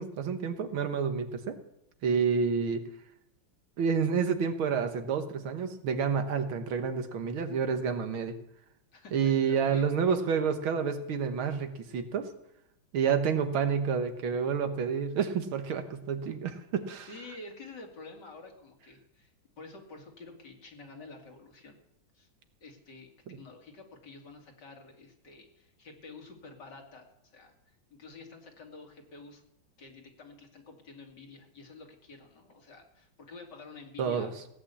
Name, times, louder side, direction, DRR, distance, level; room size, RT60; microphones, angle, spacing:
voice 1, 0.0-1.6 2.0-2.8 3.8-8.3 9.1-12.3 12.9-17.1 23.3-23.4 34.0-34.3, right 6 dB, 80° right, 8 dB, 2.1 m, -29 dB
voice 2, 8.9-9.9 17.1-19.3 19.6-21.8 22.1-22.3 22.6-27.1 27.3-27.5 27.9-29.4 29.8-34.3, left 3 dB, 55° left, 2 dB, 2.9 m, -49 dB
17.0 x 8.8 x 8.3 m, 0.78 s
omnidirectional pair, 2.2 m